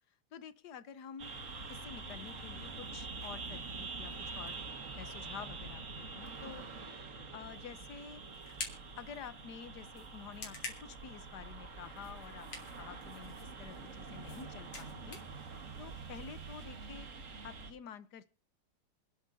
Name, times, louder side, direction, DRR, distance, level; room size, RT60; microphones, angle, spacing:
voice 1, 0.3-1.3 1.7-4.6 5.0-6.6 6.9-8.2 8.9-12.5 12.8-15.2 15.8-17.1 17.4-18.3, left 7 dB, 60° left, 13 dB, 1.3 m, -49 dB
sound 1, 1.2-17.7, right 4 dB, 40° right, 1.8 m, -46 dB
sound 2, 7.4-16.6, left 3 dB, 80° left, 4.3 m, -50 dB
27.5 x 10.5 x 2.7 m, 0.38 s
omnidirectional pair, 2.4 m